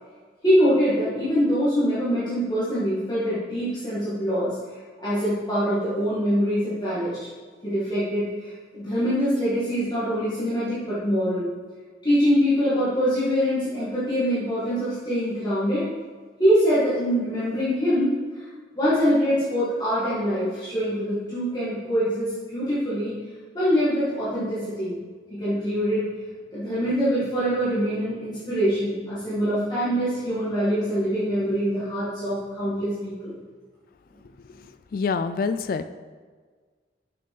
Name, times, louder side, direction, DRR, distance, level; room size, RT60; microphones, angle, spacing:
voice 1, 0.4-7.2 7.6-11.5 12.0-15.8 16.4-18.4 18.7-23.1 23.5-25.0 25.3-26.1 26.5-33.4, equal, 25° left, -12 dB, 2.2 m, -24 dB
voice 2, 34.9-35.9, left 5 dB, 50° left, 11 dB, 0.3 m, -25 dB
6.7 x 6.4 x 5.4 m, 1.5 s
head